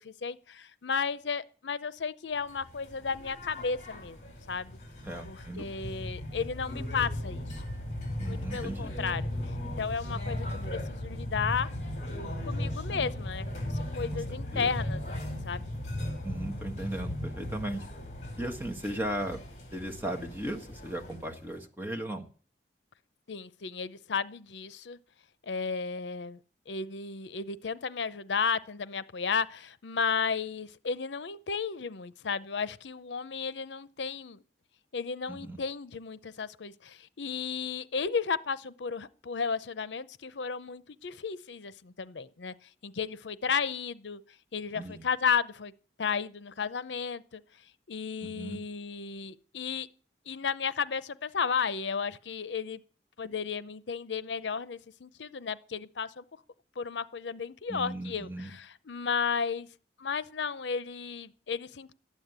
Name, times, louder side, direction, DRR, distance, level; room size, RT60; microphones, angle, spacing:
voice 1, 0.1-4.8 5.3-7.4 8.3-9.2 9.8-11.7 12.4-15.7 23.3-25.0 25.5-26.4 26.7-34.4 34.9-42.5 42.8-44.2 44.5-45.7 46.0-47.4 47.9-49.9 50.3-52.8 53.2-56.2 56.8-59.7 60.0-61.9, left 6 dB, 80° left, 0.7 m, -33 dB
sound 1, 2.4-21.6, left 1 dB, 40° left, 4.9 m, -37 dB
voice 2, 5.0-5.7 8.2-8.9 14.1-14.2 14.5-14.7 16.2-17.9 18.4-19.4 19.7-22.2 35.3-35.6 44.7-45.0 48.2-48.6 57.7-58.5, right 1 dB, 10° right, 1.6 m, -37 dB
12.5 x 9.3 x 8.0 m
head